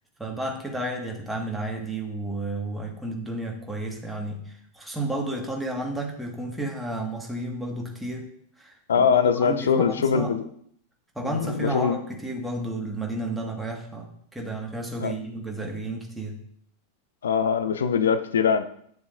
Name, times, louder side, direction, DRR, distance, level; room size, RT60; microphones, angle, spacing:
voice 1, 0.2-8.3 8.6-10.3 11.2-16.4, right 1 dB, 5° right, 0 dB, 1.7 m, -32 dB
voice 2, 8.9-10.4 11.2-12.0 15.0-15.1 17.2-18.6, left 6 dB, 65° left, 11 dB, 0.6 m, -22 dB
9.2 x 7.0 x 2.6 m, 0.65 s
figure-of-eight pair, 90°, 0 cm